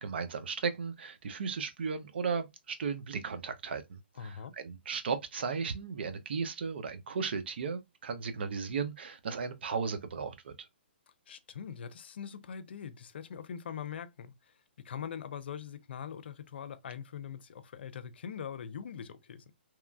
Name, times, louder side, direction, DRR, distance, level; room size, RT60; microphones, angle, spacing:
voice 1, 0.0-10.5, right 5 dB, 65° right, 0.5 m, -35 dB
voice 2, 4.2-4.5 11.3-19.5, left 8 dB, 65° left, 0.4 m, -42 dB
3.0 x 2.4 x 2.2 m
hypercardioid pair, 150°, 6 cm